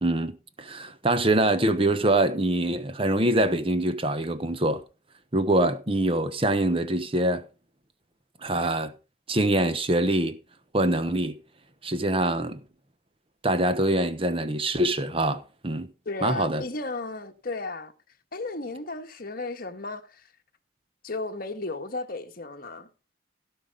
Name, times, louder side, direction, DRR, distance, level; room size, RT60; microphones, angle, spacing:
voice 1, 0.0-4.8 5.3-7.5 8.4-8.9 9.3-10.4 10.7-11.4 11.8-12.6 13.4-15.9 16.2-16.6, right 1 dB, 30° right, 1.1 m, -24 dB
voice 2, 16.0-17.9 18.3-20.3 21.0-22.9, left 3 dB, 50° left, 1.5 m, -34 dB
16.5 x 5.7 x 5.3 m
head